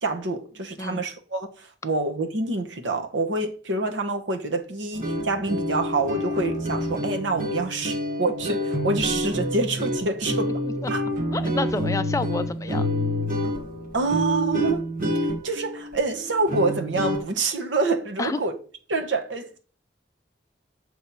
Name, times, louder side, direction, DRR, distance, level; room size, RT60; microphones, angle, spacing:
voice 1, 0.0-10.6 10.9-11.0 13.9-14.8 15.4-18.6 18.9-19.6, right 3 dB, 90° right, 1.0 m, -26 dB
sound 1, 4.9-17.2, equal, 50° right, 1.2 m, -28 dB
voice 2, 11.3-12.9 18.2-18.4, left 3 dB, 15° left, 0.4 m, -29 dB
7.2 x 3.1 x 5.3 m
head